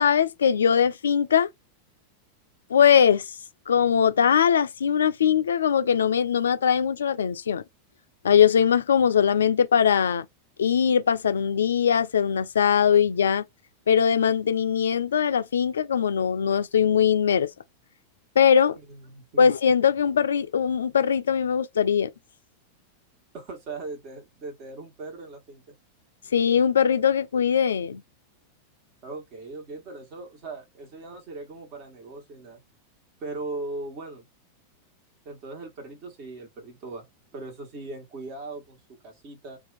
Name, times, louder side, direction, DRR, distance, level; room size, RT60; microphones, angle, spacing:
voice 1, 0.0-1.5 2.7-3.2 3.7-7.6 8.2-10.3 10.6-13.4 13.9-17.5 18.4-18.8 19.4-22.1 26.3-28.0, left 8 dB, 65° left, 0.4 m, -21 dB
voice 2, 18.9-19.5 23.3-25.6 29.0-32.6 33.2-34.2 35.2-37.0 37.3-39.6, right 3 dB, 40° right, 1.3 m, -39 dB
2.7 x 2.4 x 3.8 m
figure-of-eight pair, 90°, 0 cm